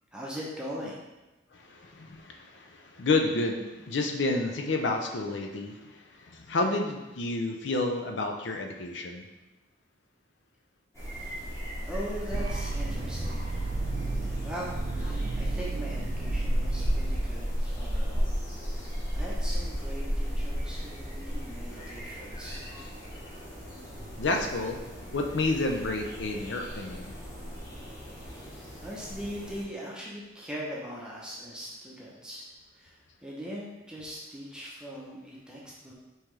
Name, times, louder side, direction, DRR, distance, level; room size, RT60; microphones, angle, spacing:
voice 1, 0.1-1.0 11.2-13.7 14.4-18.3 18.7-22.6 28.3-32.5 32.7-35.9, equal, 5° right, -5 dB, 0.7 m, -41 dB
voice 2, 1.5-9.2 24.2-24.8 25.1-27.1, left 2 dB, 65° left, 3 dB, 0.6 m, -30 dB
sound 1, 10.9-29.6, equal, 15° left, 1.2 m, -34 dB
sound 2, 12.3-18.3, right 3 dB, 45° right, 0.5 m, -34 dB
5.5 x 3.0 x 3.2 m, 1.1 s
head